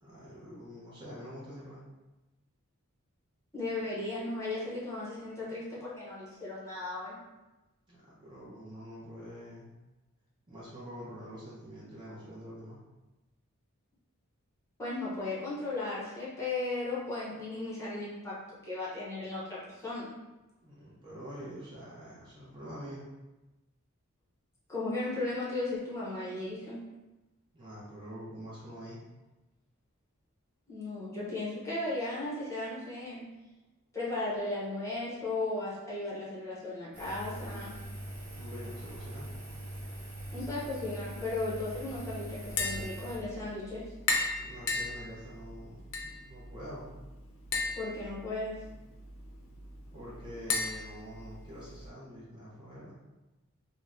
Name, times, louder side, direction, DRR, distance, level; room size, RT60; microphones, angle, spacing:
voice 1, 0.0-1.8 7.9-9.7 10.5-12.8 20.6-23.1 27.5-29.0 38.3-39.3 44.4-46.9 49.9-53.0, equal, 20° right, -8 dB, 0.7 m, -46 dB
voice 2, 3.5-7.2 14.8-20.1 24.7-26.8 30.7-33.2 33.9-37.7 40.3-43.9 47.7-48.6, left 2 dB, 15° left, -8 dB, 0.8 m, -36 dB
Engine, 36.9-43.2, right 1 dB, 60° right, 0.9 m, -42 dB
Tap, 42.4-51.9, left 3 dB, 70° left, 0.5 m, -37 dB
2.7 x 2.1 x 3.5 m, 1.1 s
head